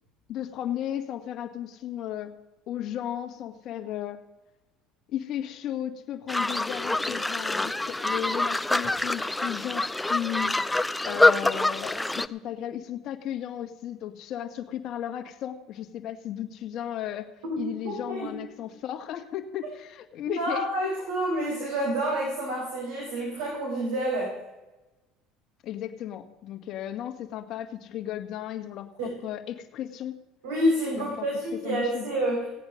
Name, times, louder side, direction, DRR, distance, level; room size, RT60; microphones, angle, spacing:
voice 1, 0.3-2.4 2.7-4.2 5.1-10.6 11.0-20.7 25.6-30.2 31.0-31.3 31.6-32.1, left 11 dB, 60° left, 5 dB, 1.7 m, -35 dB
sound 1, 6.3-12.3, left 2 dB, 10° left, 0.6 m, -25 dB
voice 2, 17.4-18.3 20.3-24.4 29.0-29.1 30.4-32.4, right 1 dB, 85° right, -3 dB, 4.5 m, -28 dB
16.5 x 8.8 x 6.4 m, 1.1 s
supercardioid pair, 90°, 0 cm